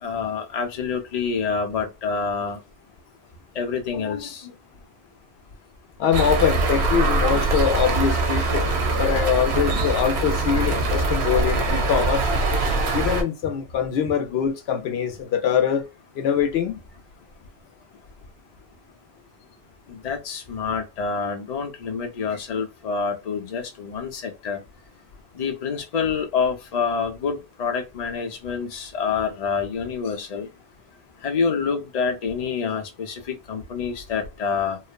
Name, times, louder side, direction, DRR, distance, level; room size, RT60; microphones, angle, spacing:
voice 1, 0.0-2.6 3.6-4.5 19.9-24.6 25.3-30.5 31.2-34.8, left 5 dB, 45° left, 0.7 m, -27 dB
voice 2, 6.0-12.2 12.9-15.8 16.2-16.8, left 8 dB, 75° left, 0.8 m, -23 dB
sound 1, 6.1-13.2, right 3 dB, 85° right, 1.0 m, -22 dB
3.1 x 2.0 x 2.2 m
omnidirectional pair, 1.1 m